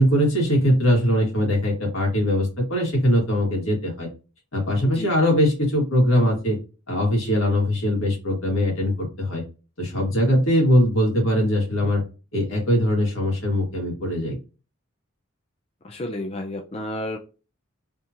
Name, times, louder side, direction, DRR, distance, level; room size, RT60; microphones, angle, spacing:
voice 1, 0.0-4.1 4.5-6.6 6.9-9.4 9.8-12.0 12.3-14.4, equal, 80° left, -1 dB, 1.9 m, -21 dB
voice 2, 4.8-5.2 15.8-17.2, left 1 dB, 30° left, 4 dB, 0.4 m, -31 dB
3.5 x 2.8 x 2.8 m, 0.32 s
head